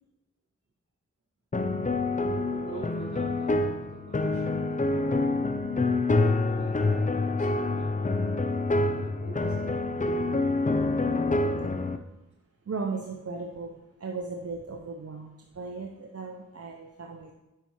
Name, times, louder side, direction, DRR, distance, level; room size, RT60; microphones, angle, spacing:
sound 1, 1.5-12.0, left 2 dB, 25° left, 0.5 m, -27 dB
voice 1, 2.2-3.6 3.9-4.5 4.9-5.3 6.2-8.2 8.7-9.7 9.9-10.2, right 3 dB, 75° right, -6 dB, 2.8 m, -45 dB
voice 2, 12.7-17.3, right 4 dB, 55° right, 2 dB, 0.8 m, -37 dB
9.2 x 5.6 x 3.2 m, 1.0 s
cardioid pair, 40°, 29 cm